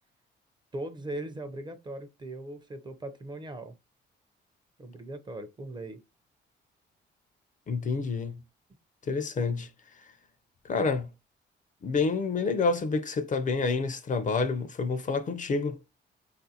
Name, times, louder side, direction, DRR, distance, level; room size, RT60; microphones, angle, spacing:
voice 1, 0.7-3.8 4.8-6.0, right 1 dB, 20° right, 0.5 m, -39 dB
voice 2, 7.7-8.4 9.1-9.7 10.6-11.1 11.8-15.8, left 4 dB, 40° left, 0.4 m, -28 dB
3.6 x 2.5 x 2.7 m
cardioid pair, 90°, 20 cm